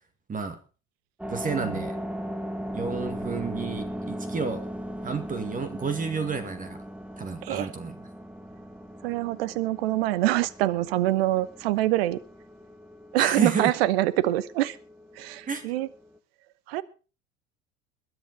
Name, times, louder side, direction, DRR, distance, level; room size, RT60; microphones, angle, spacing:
sound 1, 1.2-16.2, equal, 5° right, 1.4 m, -38 dB
voice 1, 1.3-2.0 2.7-4.7 5.0-6.8 7.2-8.0 13.2-13.7 15.5-15.6, right 5 dB, 25° right, 10 dB, 2.0 m, -30 dB
voice 2, 7.4-7.7 9.0-12.2 13.1-14.8 15.1-15.9 16.7-16.8, right 16 dB, 60° right, 19 dB, 1.1 m, -25 dB
21.5 x 8.1 x 5.3 m, 0.36 s
figure-of-eight pair, 75°, 33 cm